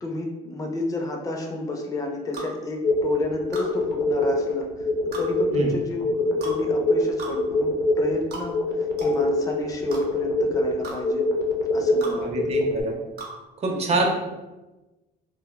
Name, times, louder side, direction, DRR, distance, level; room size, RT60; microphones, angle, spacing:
voice 1, 0.0-4.9 5.2-8.6 9.0-11.2 11.7-12.3 13.7-14.0, left 2 dB, 20° left, 2 dB, 0.4 m, -31 dB
sound 1, 2.3-2.5 3.5-3.7 5.1-5.3 6.4-6.6 7.2-7.4 8.3-8.5 9.0-9.1 9.9-10.0 10.8-11.0 12.0-12.2 13.2-13.3, right 3 dB, 75° right, 0.8 m, -35 dB
sound 2, 2.8-12.8, left 2 dB, 85° left, 0.4 m, -24 dB
voice 2, 12.2-12.9 13.6-14.1, right 2 dB, 40° right, 0 dB, 0.6 m, -25 dB
3.2 x 2.1 x 2.2 m, 1.1 s
cardioid pair, 110°, 17 cm